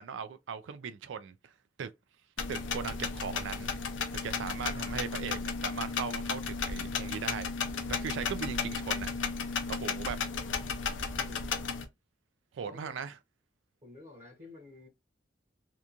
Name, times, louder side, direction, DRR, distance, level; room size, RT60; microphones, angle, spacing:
voice 1, 0.0-1.5 1.8-1.9 2.5-3.7 4.1-7.5 7.9-9.1 9.7-10.2 12.5-13.2, right 7 dB, 80° right, 0.3 m, -39 dB
sound 1, 2.4-11.8, left 5 dB, 80° left, 0.6 m, -34 dB
voice 2, 4.6-5.4 11.1-11.5 12.6-13.1 13.8-14.9, left 2 dB, 35° right, 0.9 m, -51 dB
2.9 x 2.3 x 2.5 m
head